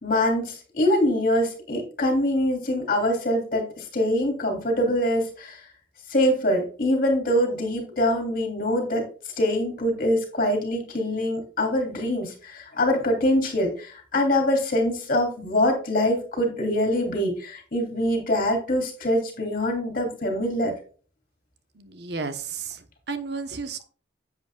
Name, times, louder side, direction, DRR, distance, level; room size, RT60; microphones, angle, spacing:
voice 1, 0.0-5.6 6.1-9.1 9.4-20.7, left 1 dB, 50° left, 3 dB, 3.2 m, -24 dB
voice 2, 21.8-23.9, right 4 dB, 65° right, 10 dB, 0.9 m, -33 dB
10.5 x 7.9 x 2.3 m, 0.40 s
head